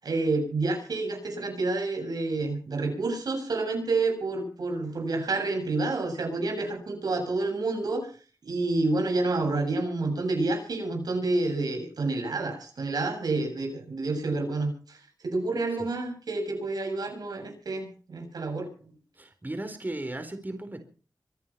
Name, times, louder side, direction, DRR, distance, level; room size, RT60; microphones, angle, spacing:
voice 1, 0.0-8.1 8.5-15.0 15.2-18.7, right 3 dB, 85° right, 3 dB, 7.3 m, -29 dB
voice 2, 19.1-20.8, right 1 dB, 30° right, 7 dB, 4.3 m, -36 dB
25.5 x 9.6 x 5.9 m, 0.39 s
cardioid pair, 50°, 7 cm